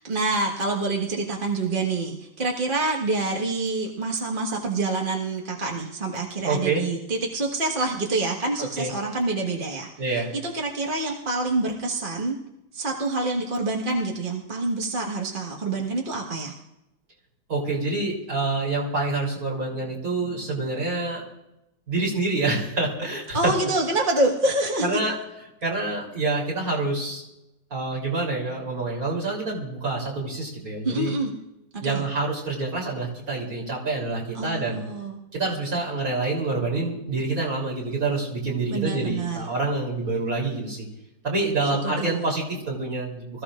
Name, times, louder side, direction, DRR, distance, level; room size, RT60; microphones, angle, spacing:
voice 1, 0.0-12.4 12.7-16.5 23.3-25.0 30.8-31.3 31.7-32.0 34.3-35.2 38.7-39.4 41.8-42.2, right 2 dB, 30° right, -1 dB, 1.5 m, -27 dB
voice 2, 6.4-6.9 8.8-8.9 10.0-10.3 17.5-21.2 21.9-23.5 24.8-25.1 25.6-27.2 27.7-31.1 31.8-34.8 35.3-40.9 41.2-43.4, right 3 dB, 45° right, -3 dB, 3.8 m, -27 dB
25.5 x 15.0 x 2.5 m, 0.90 s
omnidirectional pair, 2.1 m